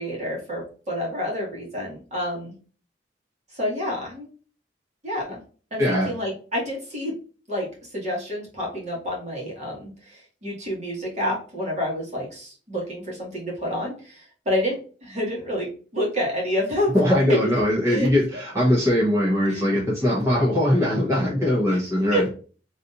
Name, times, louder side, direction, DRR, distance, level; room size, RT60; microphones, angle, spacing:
voice 1, 0.0-2.5 3.5-4.3 5.0-5.4 5.7-7.1 7.5-17.0 17.3-17.4 17.8-18.1 19.5-19.7 21.7-21.8 22.1-22.3, equal, 40° right, -3 dB, 1.9 m, -28 dB
voice 2, 5.8-6.1 16.9-22.3, left 1 dB, 15° right, -7 dB, 1.2 m, -21 dB
4.1 x 3.4 x 2.6 m, 0.38 s
head